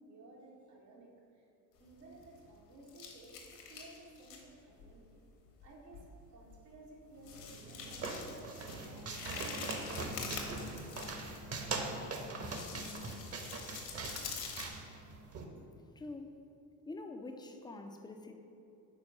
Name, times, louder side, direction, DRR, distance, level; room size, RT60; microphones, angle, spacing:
voice 1, 0.0-1.5 1.8-5.2 5.6-6.0 6.3-11.4, right 2 dB, 75° right, -5 dB, 1.5 m, -56 dB
sound 1, 1.8-2.6 2.9-4.4 4.8-5.0 5.6-5.7 5.9-6.1 6.5-6.6 7.2-11.6 12.2-14.7, left 5 dB, 60° left, 1.3 m, -46 dB
sound 2, 7.3-15.4, right 3 dB, 30° right, 0.9 m, -42 dB
voice 2, 16.0-16.5 16.9-18.4, left 2 dB, 10° left, 5 dB, 0.4 m, -45 dB
5.4 x 4.6 x 5.9 m, 2.8 s
figure-of-eight pair, 55°, 49 cm